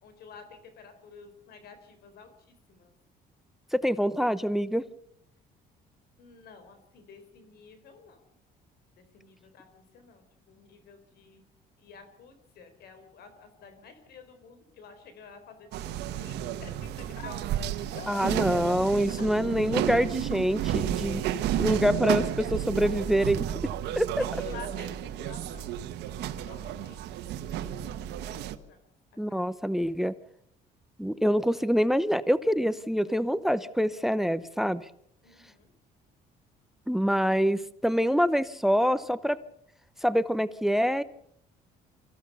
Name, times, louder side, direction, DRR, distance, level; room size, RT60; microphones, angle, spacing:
voice 1, 0.0-2.3 2.7-2.9 6.2-8.2 9.0-11.4 11.8-17.4 17.8-18.3 19.2-19.3 24.3-28.4 28.7-28.8 35.2-35.7, left 5 dB, 70° left, 9 dB, 4.2 m, -50 dB
voice 2, 3.7-4.8 18.1-21.2 21.6-23.5 24.0-24.2 29.2-30.1 31.0-34.9 36.9-39.4 40.0-41.0, equal, ahead, 16 dB, 0.7 m, -25 dB
sound 1, 15.7-28.6, right 11 dB, 85° right, 1.3 m, -32 dB
25.0 x 15.0 x 6.8 m, 0.71 s
cardioid pair, 110°, 17 cm